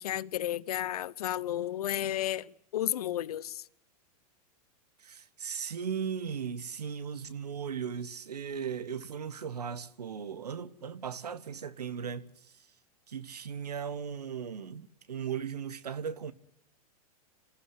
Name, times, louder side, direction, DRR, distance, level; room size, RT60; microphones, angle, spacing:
voice 1, 0.0-3.6, left 12 dB, 75° left, 0.9 m, -33 dB
voice 2, 5.0-12.5 13.1-16.3, right 7 dB, 85° right, 1.4 m, -37 dB
27.0 x 15.0 x 9.6 m
hypercardioid pair, 110°, 20 cm